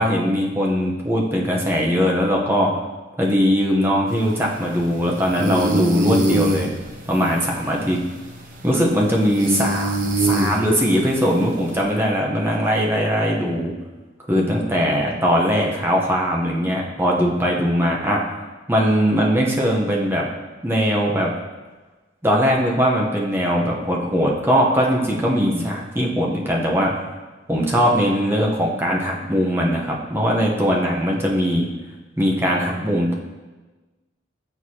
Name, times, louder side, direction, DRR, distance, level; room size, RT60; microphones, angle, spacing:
voice 1, 0.0-2.7 3.2-6.7 7.1-8.0 8.6-10.0 10.2-13.7 14.3-20.3 20.6-21.3 22.2-26.9 27.5-31.7 32.2-33.1, equal, 10° right, -2 dB, 0.8 m, -20 dB
sound 1, 4.1-11.8, right 1 dB, 45° right, 0.8 m, -25 dB
7.9 x 4.6 x 2.8 m, 1.2 s
head